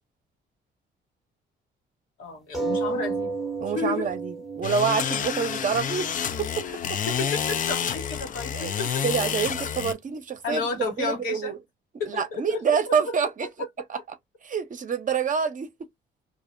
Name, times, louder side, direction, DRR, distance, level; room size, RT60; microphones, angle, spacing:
voice 1, 2.2-3.4 3.7-4.1 7.1-8.9 10.4-11.5 12.0-13.1, left 3 dB, 85° left, 1.3 m, -32 dB
sound 1, 2.5-7.5 8.3-8.4 8.7-8.8, right 4 dB, ahead, 0.7 m, -33 dB
voice 2, 3.6-6.1 6.4-7.0 8.5-11.6 12.1-13.5 13.9-14.0 14.4-15.7, right 6 dB, 40° right, 0.7 m, -27 dB
sound 2, 4.6-9.9, left 8 dB, 40° left, 0.4 m, -29 dB
2.4 x 2.1 x 2.5 m
cardioid pair, 90°, 20 cm